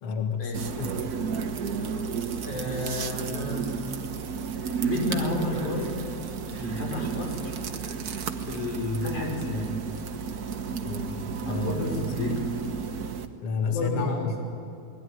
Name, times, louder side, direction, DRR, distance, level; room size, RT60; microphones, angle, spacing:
voice 1, 0.0-0.9 10.8-12.4 13.4-14.4, left 4 dB, 55° left, 4 dB, 2.4 m, -31 dB
sound 1, 0.5-13.3, right 6 dB, 65° right, 0.9 m, -32 dB
voice 2, 2.4-3.8 4.5-5.9 6.5-7.5 8.4-9.8 11.4-12.4 13.6-14.3, left 2 dB, 80° left, 0 dB, 6.8 m, -31 dB
29.0 x 20.5 x 9.8 m, 2.6 s
omnidirectional pair, 3.4 m